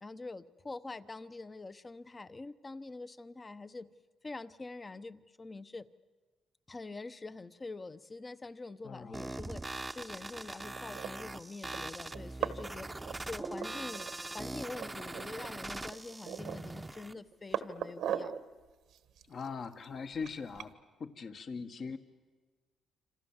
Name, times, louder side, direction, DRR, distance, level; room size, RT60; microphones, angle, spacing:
voice 1, 0.0-3.9 4.2-5.9 6.7-12.9 13.3-18.3, left 3 dB, 25° left, 13 dB, 0.9 m, -45 dB
voice 2, 8.8-9.2 19.3-20.7 21.0-22.0, left 5 dB, 50° left, 8 dB, 1.5 m, -40 dB
sound 1, 9.1-17.1, right 2 dB, 15° right, 0.8 m, -42 dB
sound 2, 10.8-11.1 11.7-11.8 12.1-12.8 13.0-14.1 14.4-14.5 14.7-15.5 15.9-16.7 17.1-18.4 18.9-20.7, right 9 dB, 80° right, 1.3 m, -38 dB
27.0 x 27.0 x 7.3 m, 1.3 s
cardioid pair, 90°, 0 cm